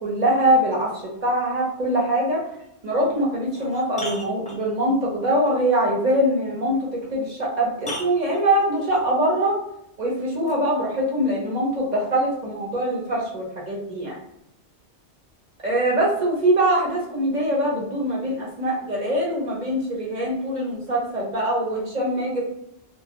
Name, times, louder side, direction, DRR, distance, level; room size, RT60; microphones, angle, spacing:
voice 1, 0.0-2.4 2.8-6.8 7.1-9.6 10.0-14.2 15.6-22.5, right 1 dB, 40° right, -3 dB, 1.0 m, -23 dB
sound 1, 2.9-3.0 3.5-5.0 7.0-7.1 7.8-9.1 10.5-10.6, left 1 dB, 10° left, 0.3 m, -37 dB
2.5 x 2.4 x 2.8 m, 0.81 s
omnidirectional pair, 1.2 m